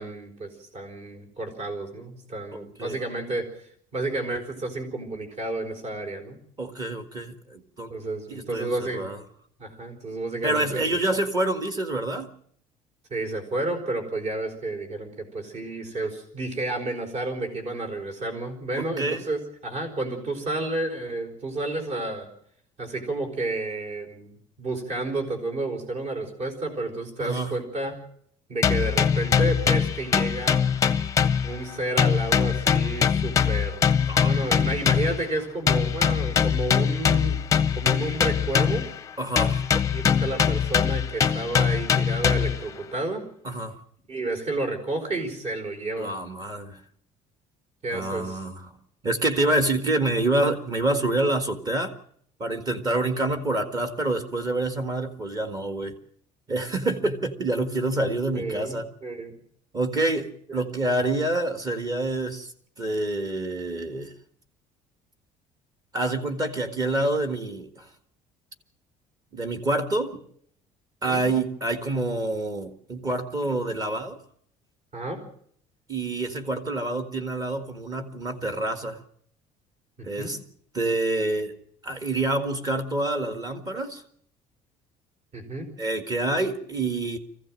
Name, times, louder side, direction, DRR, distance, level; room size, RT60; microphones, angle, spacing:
voice 1, 0.0-6.4 7.9-9.0 9.6-10.8 13.1-22.3 22.8-28.0 28.5-30.6 31.4-33.9 34.2-37.4 37.8-38.9 39.9-43.2 44.1-46.1 47.8-48.4 58.3-59.3 71.0-71.2 74.9-75.2 80.0-80.3 85.3-85.7, right 2 dB, 45° right, 5 dB, 4.8 m, -31 dB
voice 2, 2.5-3.0 6.6-7.9 8.3-9.2 10.4-12.3 18.8-19.2 27.2-27.5 34.0-34.4 39.2-39.7 43.4-43.7 46.0-46.8 47.9-48.8 49.0-51.9 52.4-56.0 56.5-58.9 59.7-62.5 62.8-64.1 65.9-67.9 69.3-70.2 71.0-74.2 75.9-79.0 80.0-80.4 80.7-81.5 81.8-84.0 85.8-87.2, right 2 dB, 25° right, 7 dB, 1.7 m, -27 dB
sound 1, 28.6-31.7 32.0-35.3 35.7-39.0 39.4-42.7, left 7 dB, 20° left, 0.7 m, -22 dB
23.0 x 15.5 x 7.6 m, 0.66 s
cardioid pair, 165°, 14 cm